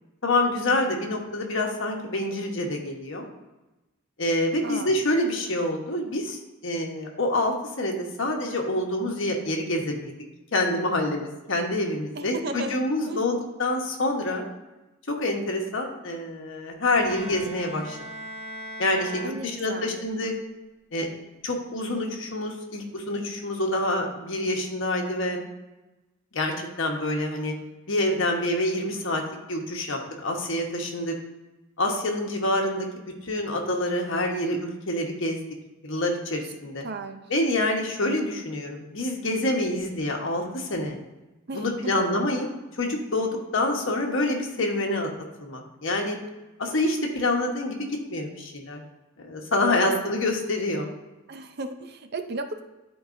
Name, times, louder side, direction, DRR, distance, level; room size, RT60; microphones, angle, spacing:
voice 1, 0.2-3.3 4.2-10.1 10.5-14.5 15.1-18.0 18.8-20.3 20.9-21.1 21.4-25.4 26.3-27.5 27.9-29.2 29.5-31.1 31.8-32.9 33.2-35.4 35.8-36.9 37.3-41.0 41.5-42.5 42.7-45.1 45.4-46.2 46.6-48.8 49.2-50.9, left 1 dB, 65° left, 1 dB, 1.2 m, -27 dB
voice 2, 4.6-5.0 12.1-12.8 13.1-13.2 19.2-20.0 36.8-37.3 41.5-42.1 49.7-50.1 51.3-52.6, right 3 dB, 50° right, 7 dB, 0.6 m, -35 dB
Bowed string instrument, 16.9-20.1, equal, 30° right, 1.8 m, -40 dB
11.5 x 4.7 x 2.6 m, 1.1 s
head